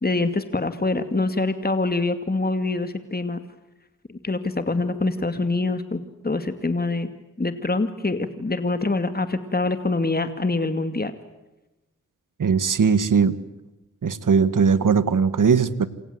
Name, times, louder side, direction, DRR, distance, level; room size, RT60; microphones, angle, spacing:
voice 1, 0.0-3.4 4.1-7.1 7.4-11.1, left 2 dB, 30° left, 9 dB, 2.4 m, -25 dB
voice 2, 12.4-13.4 14.0-15.9, right 6 dB, 75° right, 14 dB, 1.7 m, -19 dB
28.5 x 26.0 x 7.9 m, 1.0 s
cardioid pair, 55°, 32 cm